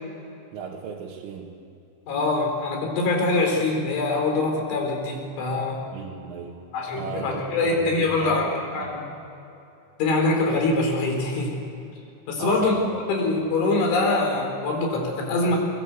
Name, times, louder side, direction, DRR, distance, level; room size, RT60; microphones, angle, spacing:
voice 1, 0.5-1.5 5.9-6.6 6.9-8.9 12.4-12.9, right 5 dB, 75° right, -3 dB, 4.1 m, -36 dB
voice 2, 2.1-5.8 6.7-9.0 10.0-11.6 12.3-15.6, left 2 dB, 65° left, 1 dB, 6.4 m, -24 dB
24.0 x 21.0 x 8.3 m, 2.8 s
omnidirectional pair, 5.9 m